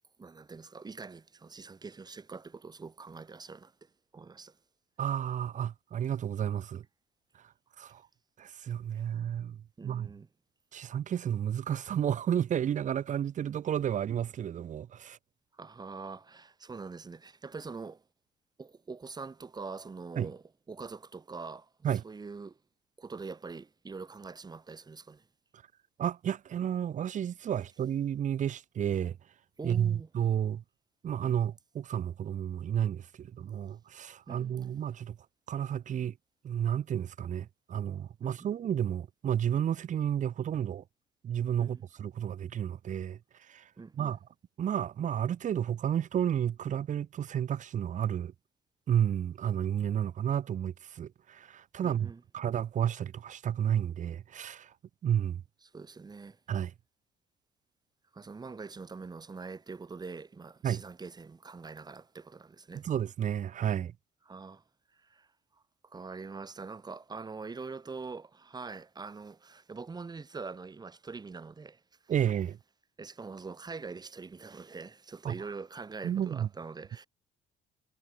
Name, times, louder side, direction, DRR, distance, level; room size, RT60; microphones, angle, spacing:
voice 1, 0.2-4.6 9.8-10.3 15.5-18.0 18.6-22.6 23.0-25.2 29.6-30.1 34.3-34.5 38.2-38.5 41.6-41.8 43.8-44.2 51.8-52.2 55.6-56.4 58.1-62.9 64.3-64.6 65.0-65.3 65.8-71.8 73.0-77.1, right 4 dB, 25° right, 4.2 m, -44 dB
voice 2, 5.0-6.8 7.8-8.0 8.4-10.1 10.7-15.2 20.2-20.3 21.8-22.0 26.0-29.2 29.6-30.6 31.0-35.2 35.5-36.1 36.4-40.8 41.2-44.2 44.6-48.3 48.9-54.7 55.0-55.4 56.5-56.7 60.6-60.8 62.7-63.9 72.1-72.6 75.2-75.3 76.0-76.5, right 9 dB, 50° right, 1.4 m, -31 dB
cardioid pair, 110°, 17 cm